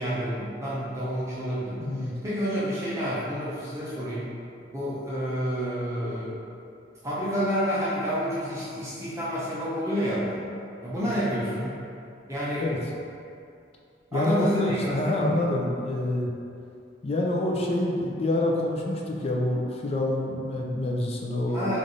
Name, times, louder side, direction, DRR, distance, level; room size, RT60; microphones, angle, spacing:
voice 1, 0.0-4.3 4.7-6.3 7.0-10.4 10.8-11.7 12.3-12.7 14.1-14.8 15.0-15.4 21.5-21.8, equal, 15° right, -9 dB, 0.6 m, -29 dB
voice 2, 1.8-2.1 12.5-12.8 14.1-16.3 17.0-21.7, left 1 dB, 30° left, -1 dB, 0.4 m, -27 dB
3.2 x 2.5 x 3.9 m, 2.5 s
head